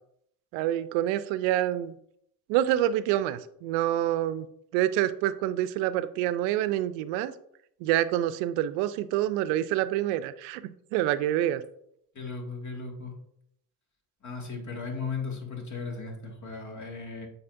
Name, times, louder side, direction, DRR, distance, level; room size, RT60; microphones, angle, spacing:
voice 1, 0.5-1.9 2.5-4.5 4.7-7.3 7.8-11.6, right 12 dB, 80° right, 14 dB, 0.5 m, -27 dB
voice 2, 12.1-13.1 14.2-17.3, left 4 dB, 45° left, 1 dB, 2.1 m, -36 dB
8.6 x 4.2 x 2.6 m, 0.71 s
supercardioid pair, 70°, 42 cm